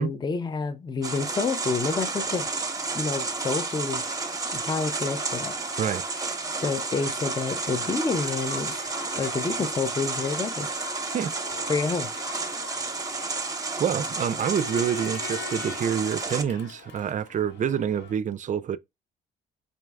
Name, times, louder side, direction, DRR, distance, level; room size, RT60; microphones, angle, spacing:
voice 1, 0.0-2.5 2.9-4.1 4.5-5.5 6.6-8.7 9.2-10.7 11.7-12.1, left 4 dB, 20° left, 0.5 m, -28 dB
Crowd, 1.0-18.1, left 5 dB, 60° left, 1.4 m, -45 dB
sound 1, 1.0-16.4, right 3 dB, 20° right, 0.8 m, -31 dB
voice 2, 13.8-18.8, right 8 dB, 40° right, 0.4 m, -27 dB
5.2 x 2.2 x 3.3 m
cardioid pair, 90°, 20 cm